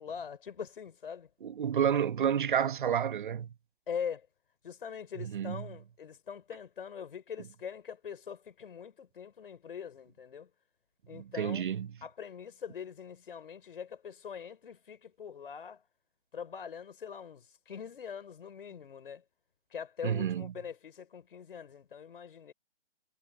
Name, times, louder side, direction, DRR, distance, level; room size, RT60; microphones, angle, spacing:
voice 1, 0.0-1.3 3.9-4.3 4.6-10.5 11.1-11.6 12.0-15.8 16.3-19.2 19.7-22.5, left 7 dB, 55° left, 5.6 m, -43 dB
voice 2, 1.4-3.5 5.2-5.6 11.1-11.9 20.0-20.5, right 8 dB, 50° right, 1.7 m, -30 dB
figure-of-eight pair, 145°, 32 cm